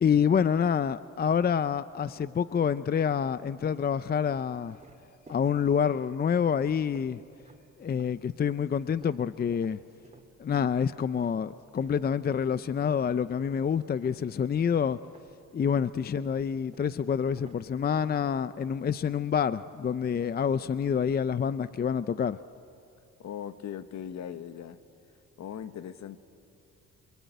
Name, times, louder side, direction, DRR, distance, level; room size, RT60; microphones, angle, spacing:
voice 1, 0.0-4.8 5.3-7.2 7.8-9.8 10.4-15.0 15.5-22.4, left 7 dB, 30° left, 15 dB, 0.5 m, -27 dB
sound 1, 1.9-2.4 3.1-8.2 8.5-14.8 15.0-18.7, right 3 dB, 20° right, 3.3 m, -56 dB
voice 2, 23.2-24.8 25.4-26.2, left 9 dB, 65° left, 11 dB, 1.3 m, -39 dB
28.5 x 22.5 x 9.4 m, 2.6 s
cardioid pair, 90°, 30 cm